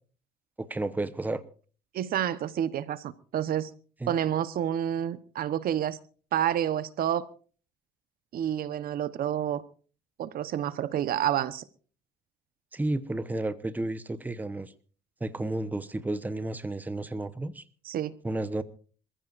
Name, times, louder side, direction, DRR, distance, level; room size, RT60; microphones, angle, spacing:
voice 1, 0.6-1.4 4.0-4.1 12.7-14.7 15.2-17.6 18.2-18.6, right 2 dB, 10° right, 12 dB, 1.0 m, -32 dB
voice 2, 1.9-3.7 4.1-6.0 6.3-7.3 8.3-9.6 10.2-11.6 17.8-18.1, right 10 dB, 60° right, 14 dB, 1.0 m, -29 dB
27.0 x 15.0 x 2.5 m, 0.41 s
cardioid pair, 110°, 17 cm